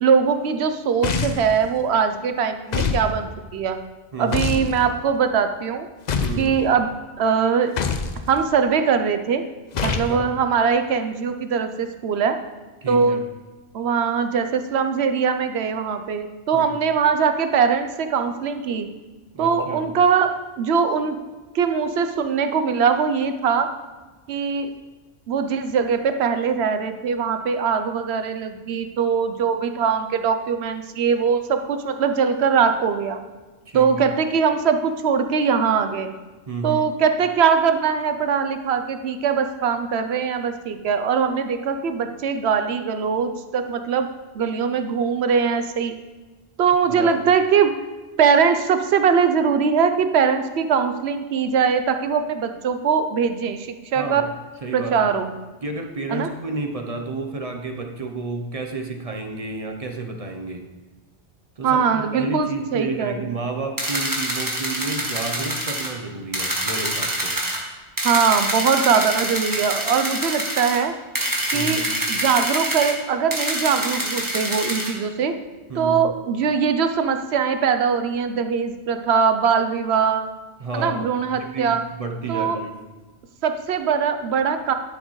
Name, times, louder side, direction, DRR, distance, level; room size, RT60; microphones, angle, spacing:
voice 1, 0.0-3.8 4.2-5.9 6.4-6.9 7.2-7.7 8.3-9.4 9.8-12.4 12.9-13.2 13.7-18.9 19.4-21.2 21.5-23.7 24.3-24.7 25.3-33.2 33.7-36.1 36.6-44.1 44.3-45.9 46.6-47.7 48.2-54.2 54.7-55.3 56.1-56.3 61.6-63.4 68.0-70.9 71.5-71.8 72.1-75.4 75.7-80.3 80.7-81.8 82.3-82.6 83.4-84.7, right 6 dB, 75° right, 8 dB, 0.9 m, -21 dB
sound 1, 1.0-1.5 2.7-3.1 4.3-4.7 6.1-6.5 7.8-8.1 9.7-10.1, left 5 dB, 50° left, 0.6 m, -24 dB
voice 2, 4.1-4.8 6.2-6.6 9.8-10.3 12.8-13.2 16.5-16.8 19.3-19.9 33.6-34.1 36.5-36.9 46.9-47.3 53.9-54.3 54.6-55.1 55.6-60.7 61.6-67.4 71.5-72.0 75.7-76.1 80.6-82.8, right 3 dB, 40° right, 3 dB, 0.7 m, -31 dB
sound 2, 63.8-65.9 66.3-67.6 68.0-70.8 71.1-72.9 73.3-74.9, right 1 dB, 20° right, 1.4 m, -26 dB
11.5 x 6.5 x 3.1 m, 1.2 s
omnidirectional pair, 1.1 m